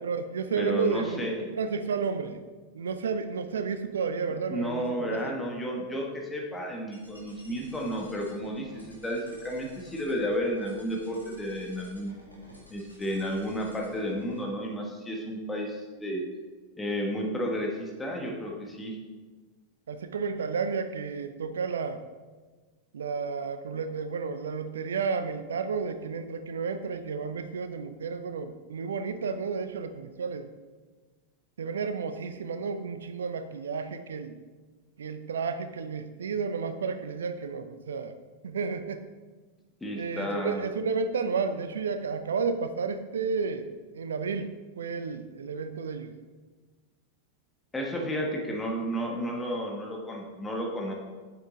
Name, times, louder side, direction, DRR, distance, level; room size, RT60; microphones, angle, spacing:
voice 1, 0.0-2.4 2.7-5.3 19.9-22.0 22.9-30.5 31.6-34.4 35.0-38.2 38.4-39.0 39.9-46.1, right 5 dB, 65° right, 10 dB, 0.6 m, -32 dB
voice 2, 0.6-1.4 4.5-12.2 12.7-16.2 16.8-19.0 39.8-40.6 47.7-50.9, equal, 10° left, -1 dB, 1.2 m, -32 dB
sound 1, 6.9-14.4, left 1 dB, 90° left, 1.5 m, -53 dB
7.7 x 6.9 x 3.8 m, 1.3 s
figure-of-eight pair, 90°, 0 cm